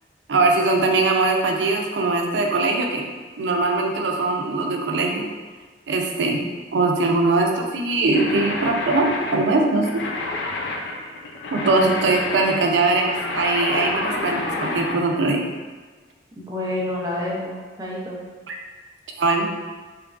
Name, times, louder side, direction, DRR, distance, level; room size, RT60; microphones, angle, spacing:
voice 1, 0.3-3.1 3.4-5.3 5.9-6.4 6.7-10.1 11.5-15.5 18.5-18.6 19.2-19.5, right 3 dB, 90° right, 2 dB, 0.5 m, -21 dB
sound 1, 8.1-15.0, left 2 dB, 90° left, 0.4 m, -29 dB
voice 2, 16.4-18.2, left 1 dB, 20° right, -5 dB, 0.6 m, -29 dB
3.5 x 3.1 x 2.4 m, 1.3 s
head